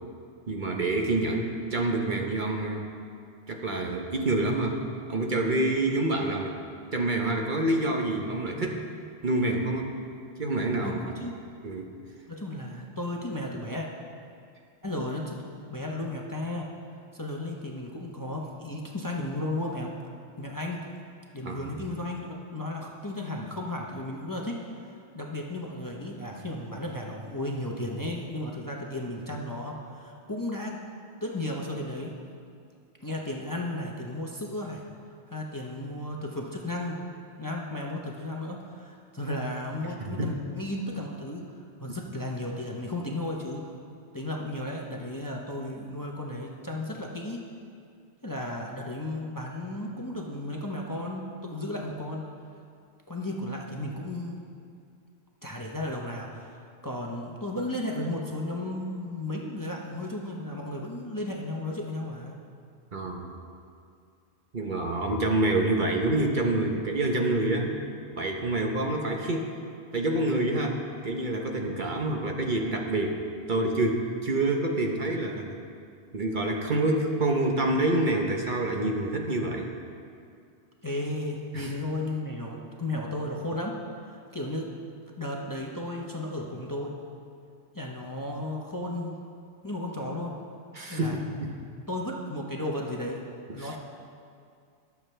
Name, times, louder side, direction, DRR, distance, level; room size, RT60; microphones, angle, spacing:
voice 1, 0.5-2.8 3.5-4.8 5.1-6.6 6.9-8.7 9.2-9.9 10.4-11.0 11.6-11.9 21.4-21.6 40.0-40.3 62.9-63.3 64.5-67.7 68.1-69.5 69.9-70.8 71.0-73.2 73.5-75.6 76.1-79.7 81.5-81.7 90.7-91.5 93.6-93.7, right 2 dB, 45° right, 1 dB, 1.0 m, -27 dB
voice 2, 8.5-9.0 10.8-11.3 12.3-13.9 14.8-15.4 15.7-16.7 17.1-19.9 20.4-20.8 21.3-30.8 31.2-32.1 33.0-34.8 35.3-37.0 37.4-41.5 41.8-43.7 44.1-47.4 48.2-52.3 53.1-54.4 55.4-56.6 56.8-62.4 80.8-83.8 84.0-84.7 85.2-86.9 87.7-89.2 89.6-90.4 90.9-91.2 91.9-93.2 93.5-93.8, left 1 dB, 20° left, -1 dB, 0.8 m, -34 dB
21.5 x 7.3 x 3.3 m, 2.4 s
omnidirectional pair, 1.1 m